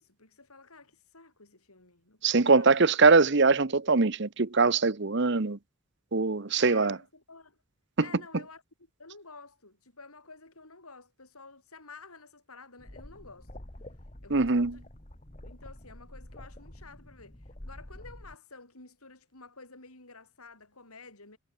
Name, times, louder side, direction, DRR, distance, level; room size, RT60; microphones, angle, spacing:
voice 1, 0.0-2.7 6.5-7.6 8.0-8.6 9.0-13.5 14.2-14.8 15.4-21.4, left 3 dB, 85° left, 7.6 m, -51 dB
voice 2, 2.2-5.6 6.1-7.0 14.3-14.7, right 4 dB, 55° right, 0.9 m, -22 dB
sound 1, 12.8-18.4, left 1 dB, 30° left, 2.0 m, -47 dB
head